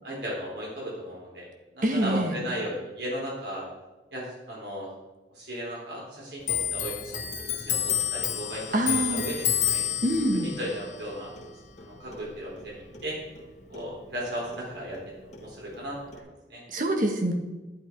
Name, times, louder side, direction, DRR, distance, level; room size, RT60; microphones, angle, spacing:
voice 1, 0.0-1.4 1.7-3.7 4.1-4.9 5.3-7.2 7.5-9.8 10.3-11.3 11.8-13.2 13.7-16.6, equal, 65° right, -4 dB, 3.8 m, -36 dB
voice 2, 1.8-2.3 8.7-9.2 10.0-10.5 16.7-17.3, right 1 dB, 45° right, 3 dB, 1.6 m, -25 dB
Clock, 6.4-13.5 13.7-15.1 15.3-16.2, left 10 dB, 40° left, 1.3 m, -31 dB
11.5 x 11.0 x 4.7 m, 1.1 s
head